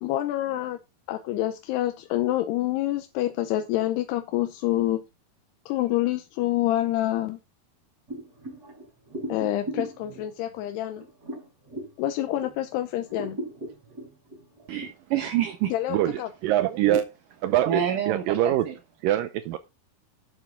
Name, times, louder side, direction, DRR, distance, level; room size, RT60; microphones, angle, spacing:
voice 1, 0.0-0.8 1.1-5.0 5.7-7.4 9.3-11.1 12.0-13.4 15.7-16.3, left 14 dB, 85° left, 2.9 m, -27 dB
sound 1, 8.1-12.7 13.0-14.9, right 1 dB, 20° right, 4.9 m, -38 dB
voice 2, 14.7-15.7 16.8-17.0 17.7-18.7, right 10 dB, 65° right, 2.2 m, -28 dB
voice 3, 15.9-17.1 17.4-18.7 19.0-19.6, right 12 dB, 85° right, 2.0 m, -24 dB
12.0 x 8.4 x 3.6 m
omnidirectional pair, 4.7 m